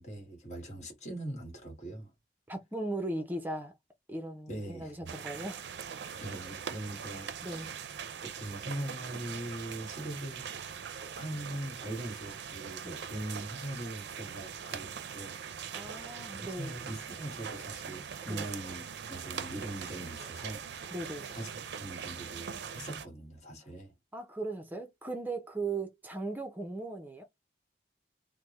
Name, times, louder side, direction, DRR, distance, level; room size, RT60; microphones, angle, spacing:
voice 1, 0.0-2.1 4.5-5.2 6.2-7.7 8.2-10.5 11.1-15.7 16.3-20.6 21.3-21.5 21.8-23.9, right 1 dB, 40° left, 1.3 m, -41 dB
voice 2, 2.5-3.8 4.1-5.7 7.4-7.8 12.8-13.0 15.7-16.8 18.3-18.5 20.9-21.3 24.1-27.2, right 2 dB, 10° right, 0.5 m, -38 dB
sound 1, 5.1-23.1, right 7 dB, 70° right, 0.4 m, -42 dB
3.3 x 2.0 x 3.0 m
head